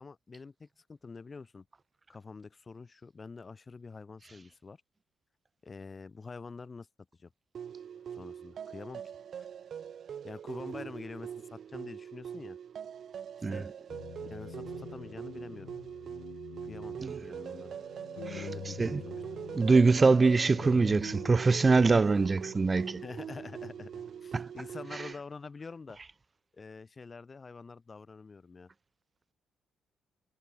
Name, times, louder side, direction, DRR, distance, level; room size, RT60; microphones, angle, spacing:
voice 1, 0.0-1.7 2.1-4.8 5.6-6.9 7.2-7.3 8.1-9.0 9.4-9.5 10.2-12.6 13.5-15.7 16.6-17.8 18.3-19.2 23.0-23.9 24.2-26.0 26.5-28.7, left 4 dB, 30° left, 6.4 m, -46 dB
sound 1, 7.5-25.1, right 8 dB, 55° right, 5.2 m, -42 dB
sound 2, 13.9-24.6, left 14 dB, 85° left, 3.6 m, -49 dB
voice 2, 18.3-19.0 19.5-23.0 24.3-24.5 24.9-25.1, right 4 dB, 30° right, 0.5 m, -24 dB
cardioid pair, 90°, 0 cm